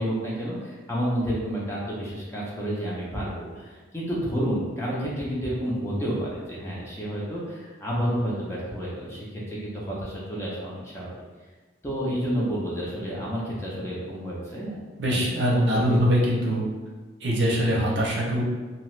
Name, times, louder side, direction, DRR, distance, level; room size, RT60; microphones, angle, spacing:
voice 1, 0.0-11.1 11.8-14.8 15.0-16.0, equal, 15° left, -6 dB, 0.5 m, -30 dB
voice 2, 15.0-16.6 17.2-18.4, equal, 60° right, -3 dB, 0.6 m, -23 dB
2.8 x 2.3 x 3.1 m, 1.3 s
head